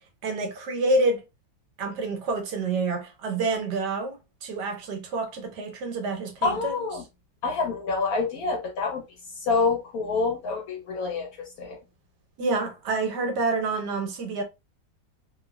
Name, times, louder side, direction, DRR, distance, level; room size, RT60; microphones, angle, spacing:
voice 1, 0.2-1.2 1.8-6.8 12.4-14.4, right 3 dB, 70° right, 1.3 m, -28 dB
voice 2, 6.4-7.0 7.4-9.0 9.4-11.8, left 4 dB, 65° left, 1.0 m, -27 dB
3.1 x 2.3 x 2.2 m
omnidirectional pair, 2.0 m